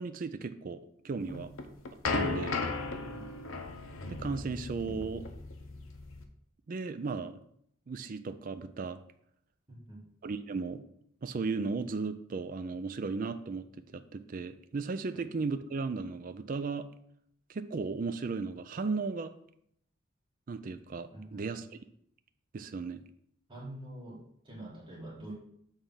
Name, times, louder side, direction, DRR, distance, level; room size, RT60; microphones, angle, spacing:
voice 1, 0.0-1.5 2.1-2.6 4.1-5.3 6.7-7.4 7.9-9.0 10.2-10.8 11.2-13.6 13.9-16.9 17.5-19.3 20.5-21.6 22.5-23.0, right 4 dB, 45° right, 10 dB, 0.4 m, -35 dB
sound 1, 1.3-6.2, left 3 dB, 85° left, 0.9 m, -36 dB
voice 2, 2.9-3.3 9.7-10.1 15.1-15.2 21.1-21.5 23.5-25.3, right 1 dB, 25° right, -6 dB, 1.7 m, -46 dB
7.2 x 3.4 x 5.6 m, 0.70 s
head